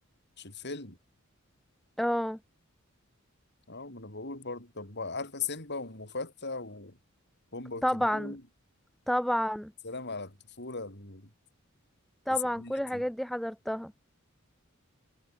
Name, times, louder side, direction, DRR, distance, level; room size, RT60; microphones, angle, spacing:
voice 1, 0.4-1.0 3.7-7.0 7.5-8.4 9.8-11.3 12.6-13.0, left 4 dB, 55° left, 7.3 m, -39 dB
voice 2, 2.0-2.4 7.8-8.4 9.1-9.7 12.3-13.9, equal, ahead, 0.3 m, -29 dB
head